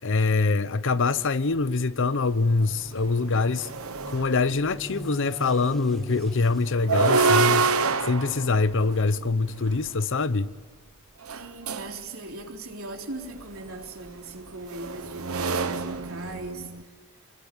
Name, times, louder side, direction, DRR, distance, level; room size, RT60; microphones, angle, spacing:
voice 1, 0.0-3.7 4.1-7.8 8.0-10.5, left 3 dB, 60° left, 0.8 m, -24 dB
sound 1, 1.4-8.4, equal, ahead, 1.5 m, -44 dB
sound 2, 2.3-2.4 2.9-4.8 6.7-9.9 11.2-12.0 13.4-16.8, right 4 dB, 90° right, 1.2 m, -27 dB
voice 2, 11.3-16.7, right 2 dB, 70° right, 3.6 m, -39 dB
28.5 x 20.5 x 9.3 m
head